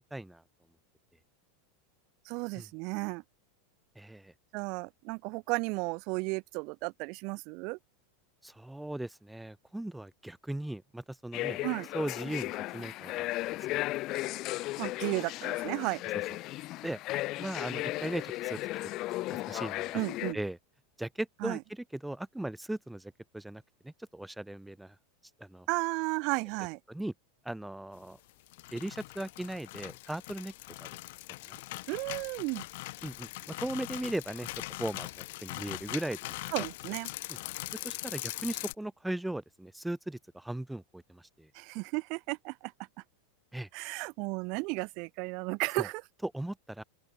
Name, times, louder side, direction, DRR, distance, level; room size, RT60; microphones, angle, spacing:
voice 1, 0.1-0.4 2.5-2.7 3.9-4.3 8.4-11.6 11.9-13.3 13.7-13.8 16.5-17.0 17.4-18.6 19.5-20.0 20.3-20.6 21.0-24.9 25.4-25.7 26.9-27.1 27.4-28.2 28.7-30.5 30.8-30.9 31.4-31.6 33.0-34.5 34.8-36.2 37.7-41.5 43.5-43.7 45.8-45.9 46.2-46.8, right 1 dB, 5° right, 5.1 m, -38 dB
voice 2, 2.3-3.2 4.5-7.8 11.6-11.9 14.8-16.0 19.9-20.4 21.4-21.6 25.7-26.8 31.9-32.6 36.5-37.1 41.5-42.7 43.7-46.0, right 29 dB, 55° right, 3.7 m, -34 dB
sound 1, 11.3-20.3, left 18 dB, 45° left, 1.8 m, -35 dB
sound 2, 28.3-38.7, left 20 dB, 65° left, 1.9 m, -41 dB
open air
hypercardioid pair, 115°, 0 cm